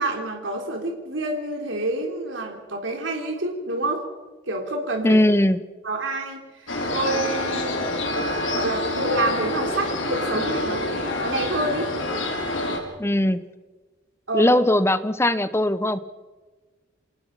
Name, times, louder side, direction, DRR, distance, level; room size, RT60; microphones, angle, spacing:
voice 1, 0.0-4.0 4.5-5.2 5.8-6.4 6.9-11.9 14.3-14.5, right 2 dB, 85° right, 2 dB, 3.6 m, -28 dB
voice 2, 5.0-5.6 13.0-13.4 14.3-16.0, left 1 dB, 15° left, 13 dB, 0.9 m, -19 dB
sound 1, 6.7-12.8, left 2 dB, 85° left, 4.9 m, -27 dB
28.0 x 18.5 x 5.8 m, 1.2 s
head